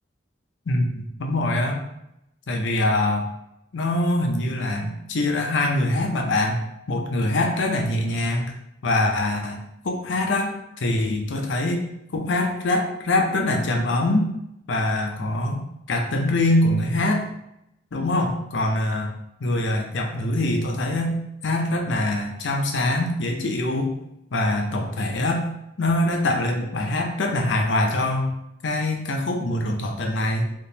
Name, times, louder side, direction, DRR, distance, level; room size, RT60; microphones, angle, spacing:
voice 1, 0.7-1.8 2.5-3.3 3.7-6.6 6.9-8.5 8.8-11.8 12.1-14.3 14.7-17.2 17.9-19.1 19.4-21.1 21.4-23.9 24.3-25.4 25.8-28.4 28.6-30.5, left 1 dB, 70° left, 2 dB, 0.6 m, -23 dB
3.6 x 2.9 x 2.8 m, 0.81 s
head